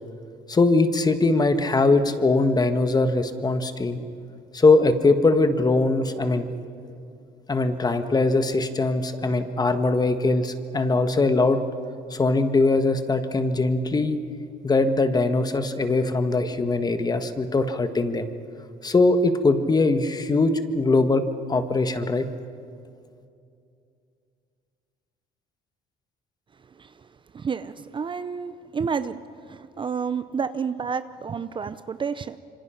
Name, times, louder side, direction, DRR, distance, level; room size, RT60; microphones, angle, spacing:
voice 1, 0.5-4.0 4.5-6.5 7.5-11.6 12.1-14.2 14.6-18.3 18.8-21.2 21.5-22.3, left 3 dB, 25° left, 9 dB, 1.5 m, -21 dB
voice 2, 27.3-29.2 29.5-32.4, right 6 dB, 30° right, 13 dB, 0.6 m, -30 dB
26.0 x 25.0 x 5.9 m, 2.5 s
cardioid pair, 110°, 17 cm